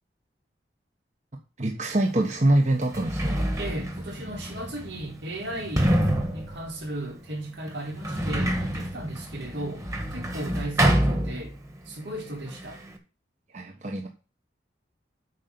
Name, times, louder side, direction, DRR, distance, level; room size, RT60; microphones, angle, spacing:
voice 1, 1.6-3.5 13.5-14.1, right 1 dB, 40° right, 1.3 m, -24 dB
Sliding door, 2.0-2.1 2.7-11.9 12.1-13.0, right 1 dB, 20° right, 1.7 m, -28 dB
voice 2, 3.6-5.9 6.3-9.8 10.1-11.5 11.8-12.8, right 1 dB, 80° right, 4.4 m, -36 dB
8.3 x 5.7 x 6.8 m
head